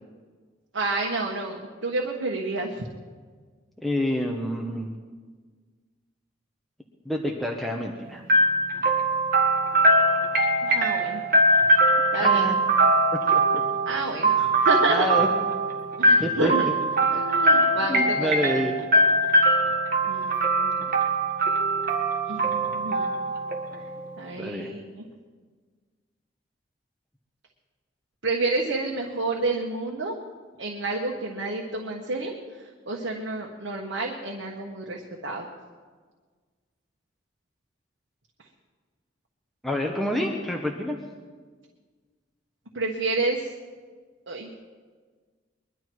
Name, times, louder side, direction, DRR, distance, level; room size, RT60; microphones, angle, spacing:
voice 1, 0.7-2.9 10.6-11.2 12.1-12.5 13.9-15.1 16.0-16.7 17.1-18.4 20.1-20.7 22.3-23.0 24.2-25.0 28.2-30.2 30.6-32.3 32.6-35.5 42.7-43.5 44.3-44.5, right 2 dB, 85° right, -1 dB, 1.4 m, -29 dB
voice 2, 3.8-4.9 7.0-8.2 12.2-12.6 13.3-13.6 14.9-15.3 16.2-16.5 17.1-17.2 17.9-18.7 24.4-24.8 39.6-41.0, left 1 dB, ahead, 0 dB, 1.1 m, -28 dB
sound 1, 8.3-24.1, right 1 dB, 50° right, 1.7 m, -22 dB
22.0 x 11.5 x 4.7 m, 1.5 s
head